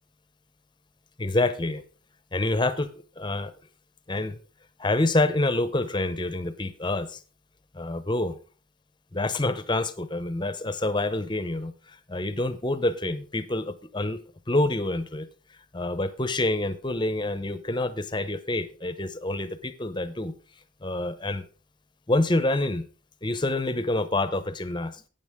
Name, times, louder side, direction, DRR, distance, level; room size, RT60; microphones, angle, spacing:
voice 1, 1.2-1.8 2.3-2.9 3.2-3.5 4.1-4.4 4.8-7.2 7.7-8.4 9.1-11.7 12.1-14.2 14.5-15.3 15.7-20.3 20.8-21.4 22.1-22.9 23.2-25.0, left 2 dB, 25° left, 13 dB, 0.8 m, -27 dB
12.5 x 9.1 x 3.6 m, 0.36 s
head